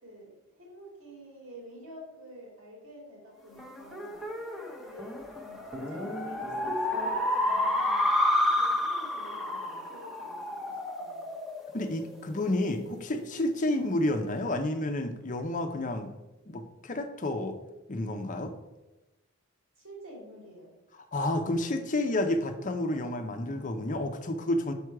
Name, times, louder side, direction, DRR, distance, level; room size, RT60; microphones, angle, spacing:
voice 1, 0.0-4.3 4.8-8.2 8.5-11.3 13.7-14.0 19.8-20.7 22.8-23.1, equal, 75° right, -2 dB, 2.8 m, -49 dB
sound 1, 3.6-12.4, left 1 dB, ahead, 0.9 m, -30 dB
voice 2, 11.7-16.1 16.5-17.6 17.9-18.5 21.1-24.7, left 1 dB, 35° left, 6 dB, 0.6 m, -30 dB
6.2 x 5.4 x 4.7 m, 1.0 s
head